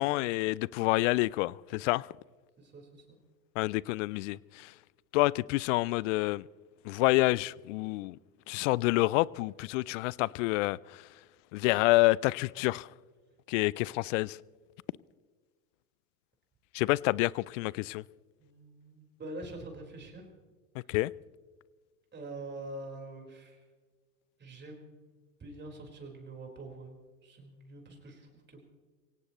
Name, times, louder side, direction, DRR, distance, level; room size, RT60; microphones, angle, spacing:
voice 1, 0.0-2.1 3.6-4.7 5.1-6.4 6.9-8.2 8.5-10.8 11.5-12.9 13.5-14.4 16.7-18.0 20.9-21.1, left 21 dB, 55° left, 0.5 m, -28 dB
voice 2, 2.6-3.0 18.4-20.3 20.9-21.0 22.1-23.6 24.4-27.0 27.2-28.7, right 2 dB, 25° right, 4.5 m, -45 dB
24.0 x 17.5 x 3.1 m
hypercardioid pair, 90°, 46 cm